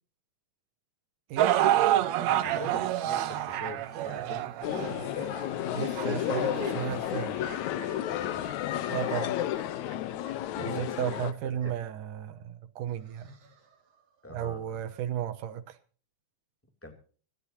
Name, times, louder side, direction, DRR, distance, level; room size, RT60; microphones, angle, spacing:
sound 1, 1.4-7.6 8.3-8.4 9.1-9.2, right 12 dB, 70° right, 2.1 m, -28 dB
voice 1, 2.4-4.5 8.2-8.3 10.5-11.3 11.6-11.8 14.2-14.8 16.8-16.9, left 2 dB, 5° left, 2.4 m, -43 dB
sound 2, 4.6-11.3, left 12 dB, 75° left, 2.2 m, -32 dB
sound 3, 5.7-11.9 12.9-14.0, right 5 dB, 55° right, 3.2 m, -45 dB
voice 2, 5.7-7.3 8.9-9.3 10.6-13.3 14.3-15.8, right 10 dB, 90° right, 2.6 m, -34 dB
25.0 x 12.0 x 2.8 m
omnidirectional pair, 3.5 m